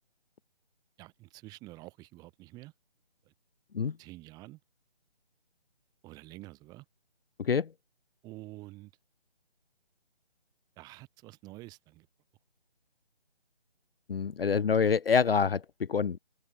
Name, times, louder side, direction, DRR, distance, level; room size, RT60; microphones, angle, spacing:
voice 1, 1.0-2.7 3.3-3.4 4.0-4.6 6.0-6.9 8.2-8.9 10.8-12.1, right 19 dB, 10° right, 3.6 m, -48 dB
voice 2, 14.1-16.2, left 6 dB, 60° left, 0.7 m, -26 dB
open air
figure-of-eight pair, 155°, 33 cm